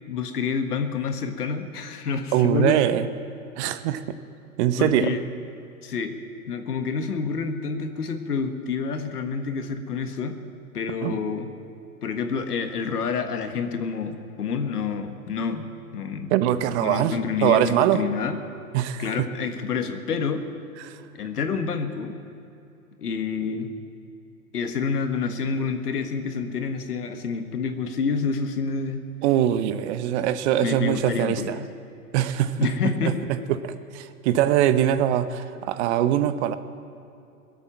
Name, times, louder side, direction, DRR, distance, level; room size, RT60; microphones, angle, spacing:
voice 1, 0.1-2.8 4.8-5.2 5.8-6.1 6.5-10.4 10.7-11.5 12.0-15.7 15.9-16.3 16.8-18.4 19.0-20.4 21.1-22.1 23.0-23.7 24.5-29.0 30.6-31.7 32.6-33.2, left 5 dB, 80° left, 7 dB, 1.7 m, -28 dB
voice 2, 2.3-3.1 3.6-4.0 4.6-5.2 11.0-11.2 16.3-18.0 18.7-19.3 20.8-21.0 29.2-31.6 32.1-32.7 33.0-33.1 33.5-36.6, right 11 dB, 45° right, 13 dB, 0.9 m, -22 dB
21.5 x 8.2 x 7.4 m, 2.7 s
hypercardioid pair, 110°, 45 cm